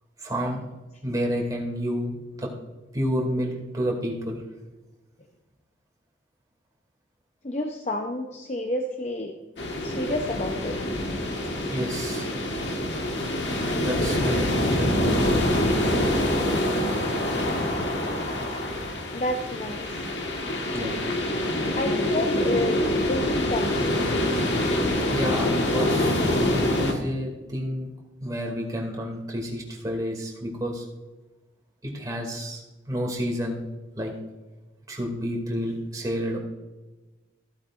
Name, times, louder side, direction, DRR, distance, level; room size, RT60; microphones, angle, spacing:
voice 1, 0.2-0.6 1.0-2.1 2.4-2.5 2.9-4.4 11.7-12.3 13.8-15.2 20.7-21.0 21.5-21.6 25.1-27.9 28.2-30.8 31.8-33.6 34.0-34.1 34.9-36.4, equal, 20° right, 0 dB, 2.3 m, -30 dB
voice 2, 7.4-9.4 9.8-10.8 19.1-20.0 21.7-24.1, left 1 dB, 35° left, 3 dB, 0.7 m, -30 dB
sound 1, 9.6-26.9, left 1 dB, 65° left, 1.5 m, -25 dB
15.0 x 8.6 x 2.5 m, 1.1 s
head